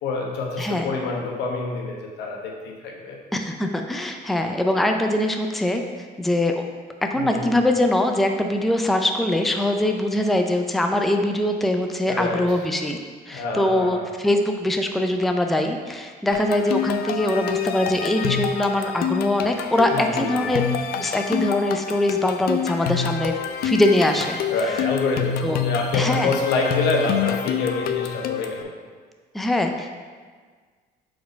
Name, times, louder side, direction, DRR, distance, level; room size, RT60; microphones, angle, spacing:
voice 1, 0.0-3.2 7.2-7.5 12.1-12.4 13.3-14.0 19.9-20.4 24.5-28.7, left 3 dB, 85° left, 0 dB, 1.1 m, -26 dB
voice 2, 0.6-0.9 3.3-6.6 7.0-13.0 13.3-20.6 21.0-23.3 23.6-24.4 25.4-25.6 25.9-26.3 29.3-30.0, left 1 dB, ahead, 4 dB, 0.4 m, -22 dB
sound 1, 16.3-28.6, left 8 dB, 70° left, 0.4 m, -27 dB
4.8 x 4.1 x 5.1 m, 1.5 s
cardioid pair, 110°, 17 cm